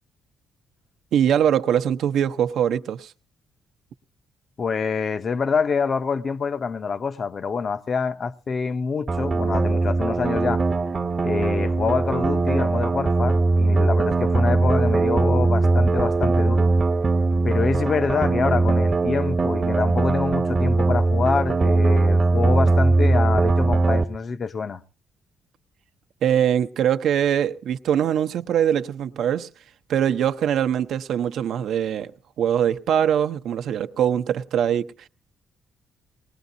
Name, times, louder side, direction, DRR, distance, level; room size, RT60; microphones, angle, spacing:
voice 1, 1.1-3.1 26.2-29.5 29.9-32.1 32.4-34.9, right 9 dB, 75° right, 0.7 m, -22 dB
voice 2, 4.6-10.6 11.2-16.7 17.4-24.8, left 5 dB, 45° left, 0.7 m, -26 dB
sound 1, 9.1-24.0, right 3 dB, 35° right, 0.9 m, -20 dB
20.0 x 19.5 x 2.6 m
cardioid pair, 90°, 0 cm